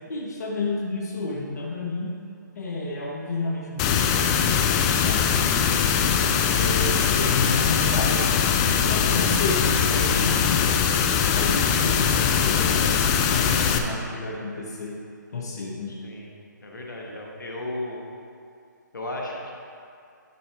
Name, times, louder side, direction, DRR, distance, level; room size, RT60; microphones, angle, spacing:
voice 1, 0.1-2.1 2.5-5.6 6.5-10.7 11.3-15.0 15.3-15.9, left 2 dB, 55° left, -2 dB, 1.3 m, -31 dB
sound 1, 3.8-13.8, left 7 dB, 20° left, 0.4 m, -21 dB
voice 2, 15.9-16.3 16.6-18.0 18.9-19.5, left 1 dB, 75° left, -1 dB, 1.5 m, -34 dB
11.0 x 5.8 x 3.5 m, 2.4 s
figure-of-eight pair, 140°, 10 cm